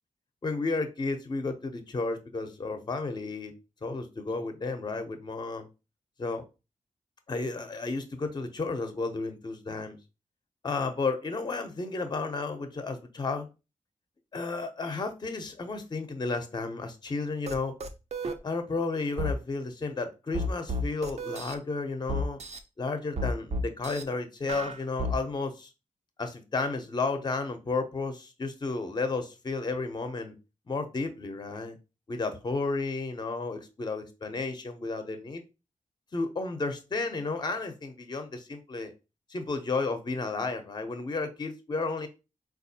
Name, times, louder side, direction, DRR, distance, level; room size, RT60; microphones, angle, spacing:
voice 1, 0.4-3.5 3.8-5.7 6.2-6.4 7.3-10.0 10.6-13.5 14.3-17.7 18.4-22.4 22.8-25.7 26.2-30.3 30.7-31.8 32.1-35.4 36.1-38.9 39.3-42.1, left 3 dB, 30° left, 7 dB, 0.5 m, -32 dB
sound 1, 17.5-17.6 17.8-18.4 19.2-19.3 20.3-21.5 22.1-22.6 23.2-24.0 24.5-25.2, equal, 50° right, 0.4 m, -31 dB
4.2 x 2.3 x 2.7 m, 0.28 s
wide cardioid pair, 150°, 14 cm